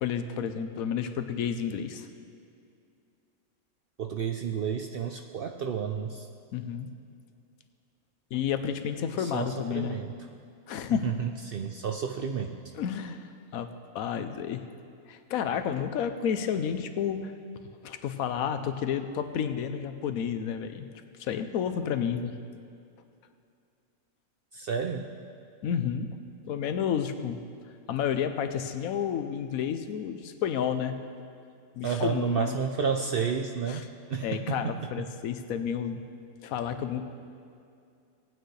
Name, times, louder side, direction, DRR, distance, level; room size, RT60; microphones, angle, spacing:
voice 1, 0.0-2.1 6.5-6.9 8.3-10.0 10.7-11.0 12.8-13.7 13.9-14.7 15.1-17.3 17.8-20.9 21.2-22.4 25.6-26.1 26.5-27.4 27.9-31.0 31.7-32.6 33.7-33.8 34.2-36.0 36.4-37.0, left 8 dB, 80° left, 9 dB, 1.1 m, -31 dB
voice 2, 4.0-6.3 9.2-10.1 11.0-12.6 24.5-25.1 31.8-33.8 34.1-34.6, right 7 dB, 70° right, 4 dB, 0.5 m, -31 dB
18.5 x 9.0 x 3.2 m, 2.4 s
omnidirectional pair, 1.5 m